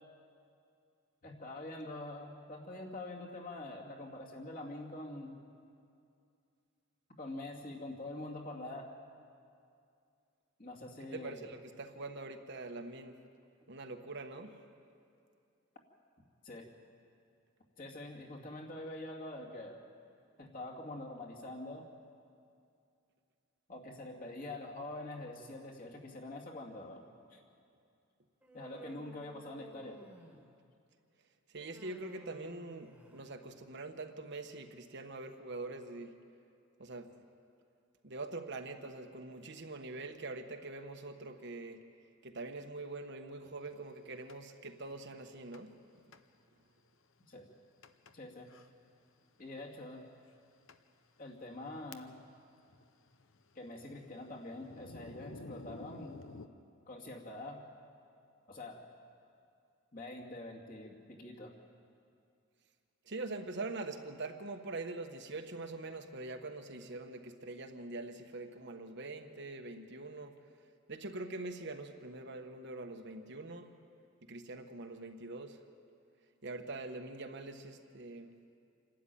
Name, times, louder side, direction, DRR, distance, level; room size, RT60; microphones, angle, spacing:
voice 1, 1.2-5.4 7.2-8.9 10.6-11.4 16.4-16.7 17.8-19.8 20.4-21.9 23.7-27.0 27.3-27.4 28.5-30.0 30.3-30.4 47.3-47.5 48.1-48.5 49.4-50.0 51.2-52.2 53.5-56.2 56.9-57.6 58.5-58.8 59.9-61.5, left 2 dB, 40° left, -1 dB, 2.5 m, -45 dB
voice 2, 11.1-13.2 13.7-14.5 31.5-36.1 36.8-37.2 38.0-41.8 42.2-45.7 63.1-70.3 70.9-73.7 74.3-75.6 76.4-78.3, right 2 dB, 55° right, 5 dB, 1.2 m, -44 dB
Human voice, 28.4-30.7 31.6-33.4, right 1 dB, 5° right, 1.7 m, -55 dB
Thunder, 44.3-44.4 45.5-45.8 46.1-46.2 46.9-47.0 47.8-48.1 48.5-48.7 49.6-49.7 50.3-50.4 50.7-50.8 51.4-52.4 52.6-56.5, left 3 dB, 65° left, 0.8 m, -52 dB
27.5 x 12.5 x 9.2 m, 2.5 s
head